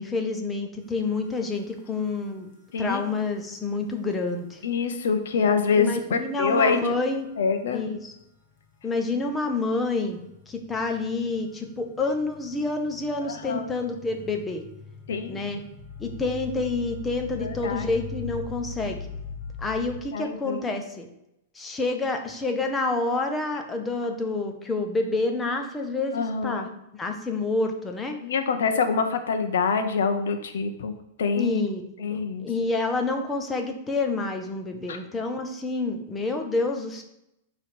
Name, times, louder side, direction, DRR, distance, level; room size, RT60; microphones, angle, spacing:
voice 1, 0.0-2.5 2.8-4.6 5.7-7.3 7.7-8.1 8.8-10.2 10.5-14.6 15.3-15.6 16.0-19.1 19.6-21.1 21.5-28.2 31.4-31.8 32.1-37.0, left 3 dB, 10° left, 4 dB, 0.7 m, -28 dB
sound 1, 1.3-1.4 2.0-2.1 3.0-3.1 6.3-6.6 8.2-8.3 9.0-20.0, left 6 dB, 40° left, 1.4 m, -41 dB
voice 2, 4.6-6.8 7.4-7.8 13.2-13.6 15.1-15.4 17.4-17.9 20.1-20.6 26.1-26.7 28.2-30.9 31.2-31.6 32.0-32.5 34.9-35.0, left 5 dB, 85° left, 7 dB, 1.0 m, -25 dB
9.1 x 3.3 x 4.7 m, 0.83 s
supercardioid pair, 170°, 0 cm